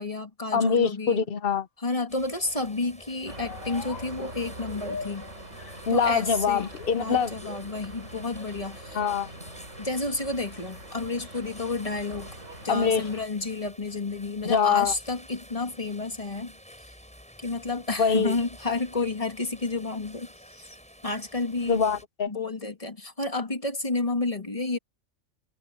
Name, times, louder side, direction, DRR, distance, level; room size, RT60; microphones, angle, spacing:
voice 1, 0.0-1.2 1.8-5.3 5.9-9.0 9.8-12.4 12.6-16.6 17.4-20.8 21.0-21.8 22.3-24.8, left 3 dB, 25° left, 1.9 m, -31 dB
voice 2, 0.5-1.7 5.9-7.3 8.9-9.3 12.7-13.0 14.4-14.9 18.0-18.3 21.7-22.3, left 6 dB, 50° left, 0.8 m, -24 dB
sound 1, 0.6-0.9 1.5-1.6 2.2-2.9 3.4-4.2 4.6-7.6, left 5 dB, 80° left, 2.2 m, -42 dB
sound 2, 2.1-22.0, equal, 5° left, 7.9 m, -50 dB
sound 3, 3.3-13.3, right 1 dB, 60° right, 7.2 m, -43 dB
omnidirectional pair, 1.4 m